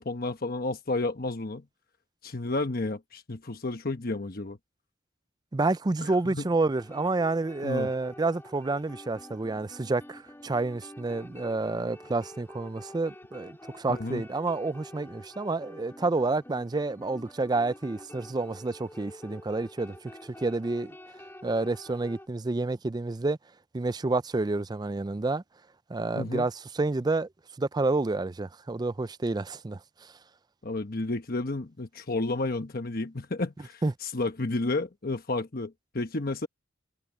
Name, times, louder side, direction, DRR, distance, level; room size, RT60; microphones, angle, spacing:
voice 1, 0.0-1.6 2.2-4.6 6.0-6.5 7.6-7.9 13.9-14.2 26.1-26.5 30.6-36.5, left 2 dB, 50° left, 1.1 m, -31 dB
voice 2, 5.5-20.0 20.2-21.0 21.4-23.4 23.7-25.4 25.9-27.3 27.6-30.1 33.8-33.9, right 3 dB, 20° right, 0.4 m, -29 dB
sound 1, 6.8-22.3, left 1 dB, 10° left, 3.5 m, -48 dB
head